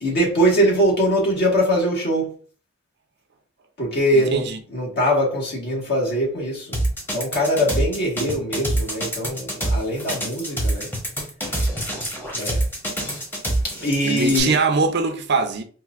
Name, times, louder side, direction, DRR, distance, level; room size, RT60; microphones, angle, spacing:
voice 1, 0.0-2.3 3.8-6.8 7.1-10.9 12.3-12.6 13.8-14.5, equal, 55° left, 1.6 m, -22 dB
voice 2, 4.1-4.6 14.0-15.6, right 4 dB, 60° right, 0.5 m, -22 dB
sound 1, 6.7-14.4, right 1 dB, 10° left, 1.0 m, -25 dB
4.5 x 2.5 x 2.4 m
head